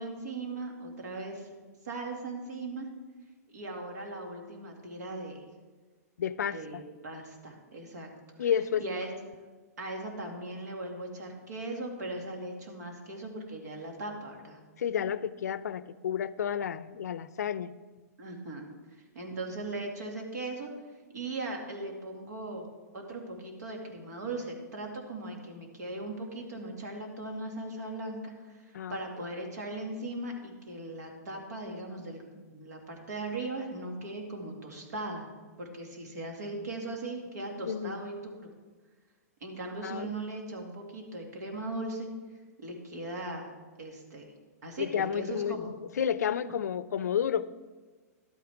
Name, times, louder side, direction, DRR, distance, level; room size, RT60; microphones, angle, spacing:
voice 1, 0.0-1.5 1.8-2.9 3.5-5.4 6.5-8.1 8.4-8.5 8.8-9.1 9.8-14.6 18.2-18.6 19.1-20.7 21.1-22.7 22.9-32.2 32.5-35.3 35.6-38.5 39.4-42.1 42.6-43.5 43.8-44.3 44.6-45.7, right 2 dB, 85° right, 2 dB, 2.2 m, -38 dB
voice 2, 6.2-6.8 8.4-8.8 14.8-17.7 28.7-29.0 37.7-38.0 39.8-40.1 44.8-47.5, left 8 dB, 90° left, 16 dB, 0.5 m, -31 dB
12.0 x 8.7 x 3.5 m, 1.4 s
hypercardioid pair, 145°, 9 cm